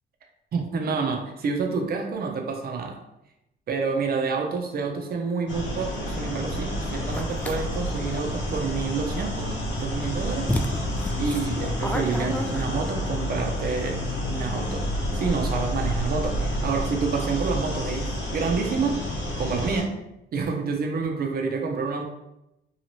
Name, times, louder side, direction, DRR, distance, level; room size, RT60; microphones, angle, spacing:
voice 1, 0.5-3.0 3.7-10.5 11.1-14.9 15.1-20.0 20.3-22.0, right 4 dB, 50° right, 3 dB, 0.6 m, -28 dB
sound 1, 5.5-19.8, equal, 65° left, 0.8 m, -29 dB
sound 2, 7.1-7.6 9.8-9.9 10.5-13.0, left 1 dB, 5° left, 0.3 m, -30 dB
2.7 x 2.4 x 2.9 m, 0.86 s
cardioid pair, 90°, 20 cm